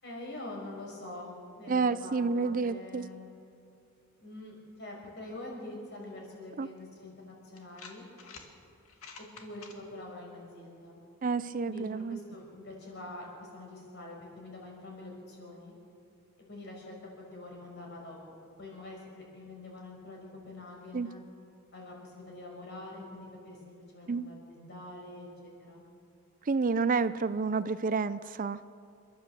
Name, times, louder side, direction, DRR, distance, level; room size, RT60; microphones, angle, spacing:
voice 1, 0.0-3.3 4.2-8.0 9.2-11.0 11.6-13.3 13.5-15.7 16.5-17.0 17.3-18.2 18.6-21.2 21.7-25.8, left 2 dB, 55° left, -1 dB, 6.1 m, -45 dB
voice 2, 1.7-3.1 6.6-6.7 11.2-12.2 20.9-21.1 24.1-24.3 26.5-28.6, right 4 dB, 40° right, 14 dB, 0.5 m, -29 dB
sound 1, 6.8-6.9 7.6-8.5 8.8-9.8, left 5 dB, 80° left, 2.2 m, -48 dB
28.0 x 12.5 x 7.6 m, 2.5 s
head